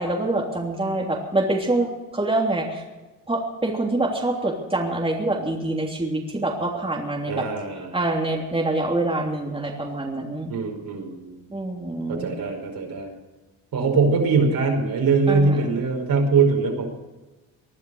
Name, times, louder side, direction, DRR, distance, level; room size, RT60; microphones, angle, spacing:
voice 1, 0.0-2.8 3.3-7.5 7.9-10.5 11.5-12.3 15.3-15.6, right 2 dB, 15° right, -1 dB, 3.2 m, -25 dB
voice 2, 7.3-7.9 10.5-11.3 12.1-13.1 13.7-16.9, right 4 dB, 60° right, 2 dB, 5.2 m, -22 dB
20.5 x 11.0 x 6.4 m, 1.1 s
supercardioid pair, 75°, 40 cm